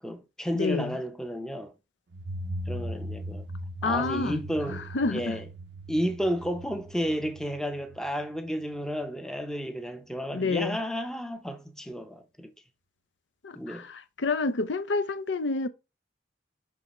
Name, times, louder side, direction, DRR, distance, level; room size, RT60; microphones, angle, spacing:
voice 1, 0.0-1.7 2.7-3.4 3.8-5.4 5.9-12.5 13.6-13.9, equal, 5° left, 0.6 m, -32 dB
voice 2, 0.5-1.0 3.8-4.4 4.7-5.4 10.3-10.8 13.4-15.7, left 3 dB, 75° left, 0.6 m, -29 dB
sound 1, 2.1-8.7, equal, 65° right, 0.5 m, -39 dB
6.5 x 5.5 x 3.0 m
head